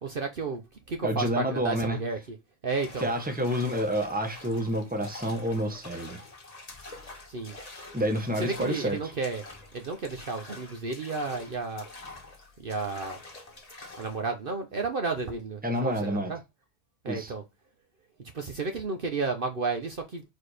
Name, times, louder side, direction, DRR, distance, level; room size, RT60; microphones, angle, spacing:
voice 1, 0.0-2.4 2.6-3.1 7.3-7.6 8.4-9.4 9.7-11.9 12.6-13.2 14.0-16.4 17.0-17.4 18.3-20.2, right 4 dB, 50° right, 1.0 m, -32 dB
voice 2, 1.0-2.0 3.0-6.2 7.9-9.0 15.6-16.3 17.1-17.3, equal, 5° right, 1.3 m, -29 dB
sound 1, 2.7-14.2, left 2 dB, 30° left, 1.5 m, -47 dB
4.7 x 4.3 x 4.8 m
omnidirectional pair, 1.3 m